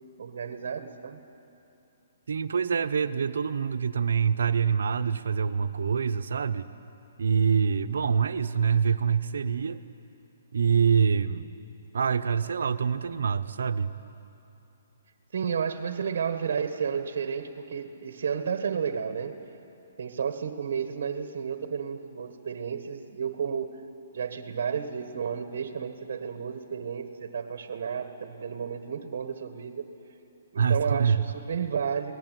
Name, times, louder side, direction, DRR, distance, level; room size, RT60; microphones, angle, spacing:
voice 1, 0.2-1.2 15.3-19.4 20.0-23.8 24.1-29.9 30.5-32.1, right 7 dB, 60° right, 8 dB, 1.6 m, -32 dB
voice 2, 2.3-6.7 7.2-9.8 10.5-11.5 11.9-13.9 30.6-31.2, right 6 dB, 80° right, 11 dB, 1.0 m, -25 dB
27.5 x 18.5 x 9.4 m, 2.8 s
hypercardioid pair, 160°, 0 cm